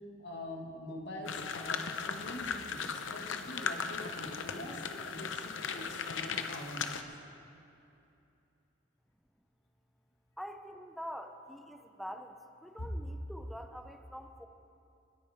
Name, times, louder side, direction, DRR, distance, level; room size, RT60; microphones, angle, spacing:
voice 1, 0.2-7.2 12.8-12.9, left 1 dB, 65° left, 1 dB, 1.9 m, -44 dB
sound 1, 1.2-7.0, left 6 dB, 85° left, 0.7 m, -37 dB
voice 2, 10.4-14.5, equal, ahead, 6 dB, 0.7 m, -45 dB
29.0 x 9.6 x 3.6 m, 2.7 s
head